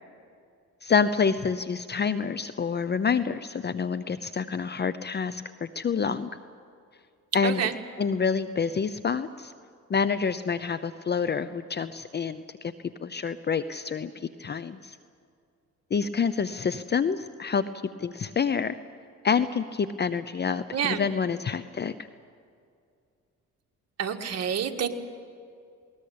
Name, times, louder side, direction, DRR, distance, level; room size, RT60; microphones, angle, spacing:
voice 1, 0.8-5.4 5.7-6.3 7.3-7.6 8.0-9.5 9.9-12.7 13.0-15.0 15.9-17.6 18.0-18.8 19.2-21.9, left 6 dB, 35° left, 13 dB, 0.7 m, -27 dB
voice 2, 7.4-7.7 20.7-21.0 24.0-24.9, right 8 dB, 55° right, 3 dB, 1.8 m, -28 dB
20.5 x 20.0 x 8.6 m, 2.3 s
cardioid pair, 90°, 30 cm